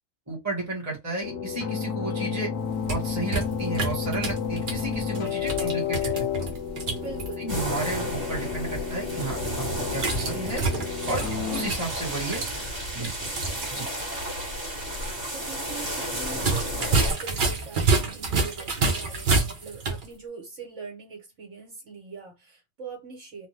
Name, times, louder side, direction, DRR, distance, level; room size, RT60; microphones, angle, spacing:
voice 1, 0.3-2.5 2.9-6.5 7.4-9.7 9.9-10.6 11.1-12.5 12.9-13.3 13.7-13.8, right 2 dB, 15° right, 1.1 m, -33 dB
sound 1, 1.2-11.7, left 7 dB, 60° left, 0.9 m, -31 dB
sound 2, 2.6-7.3 9.9-13.7 14.0-14.1 16.3-20.1, right 3 dB, 50° right, 0.7 m, -28 dB
voice 2, 5.0-5.5 6.9-7.8 13.5-13.9 14.9-23.5, right 4 dB, 65° right, 1.4 m, -42 dB
sound 3, 7.5-17.1, equal, 35° right, 1.4 m, -32 dB
2.9 x 2.0 x 3.2 m
omnidirectional pair, 1.4 m